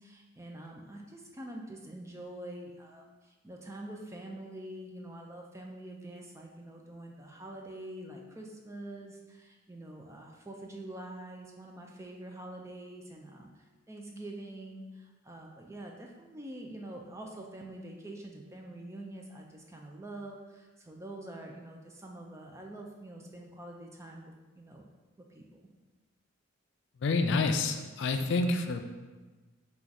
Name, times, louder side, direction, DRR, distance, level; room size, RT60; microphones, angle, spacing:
voice 1, 0.0-24.9 25.2-25.6, right 1 dB, 15° right, 0 dB, 0.4 m, -45 dB
voice 2, 27.0-28.8, left 3 dB, 60° left, 6 dB, 0.3 m, -28 dB
4.5 x 2.4 x 3.9 m, 1.2 s
head